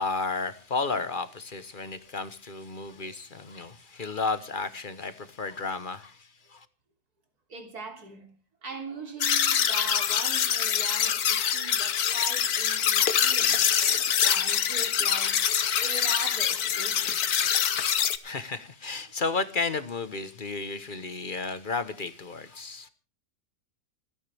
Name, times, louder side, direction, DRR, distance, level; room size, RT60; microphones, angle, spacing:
voice 1, 0.0-6.7 18.2-22.9, left 4 dB, 35° left, 1.1 m, -33 dB
voice 2, 7.5-8.3 8.6-17.7, right 3 dB, 80° right, 3.8 m, -41 dB
sound 1, 9.2-18.2, left 9 dB, 75° left, 1.5 m, -25 dB
29.5 x 10.0 x 3.4 m
omnidirectional pair, 1.6 m